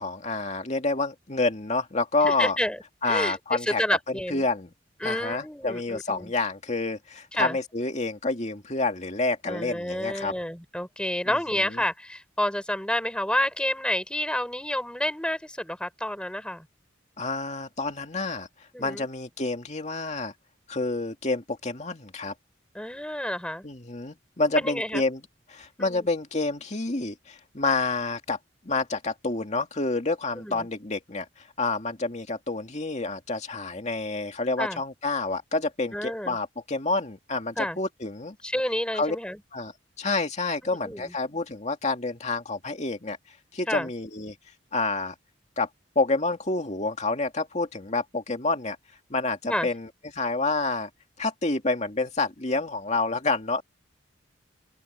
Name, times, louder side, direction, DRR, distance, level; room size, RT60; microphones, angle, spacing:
voice 1, 0.0-2.6 3.0-3.8 4.1-4.7 5.0-10.3 11.3-11.8 17.2-18.5 18.8-20.3 20.7-22.3 23.6-25.2 25.5-28.4 28.6-38.4 38.9-39.2 39.5-39.7 40.0-43.2 43.5-44.3 44.7-45.1 45.6-45.7 46.0-48.8 49.1-50.9 51.2-53.6, left 3 dB, 40° left, 2.3 m, -28 dB
voice 2, 2.2-2.8 3.1-4.4 5.0-6.3 7.3-7.6 9.5-16.7 18.7-19.0 22.7-23.6 24.5-25.0 25.8-26.1 30.3-30.7 34.6-34.8 35.9-36.4 37.6-37.8 38.4-39.4 40.6-41.1 43.7-43.9 49.5-49.7, left 1 dB, 5° left, 4.6 m, -29 dB
open air
head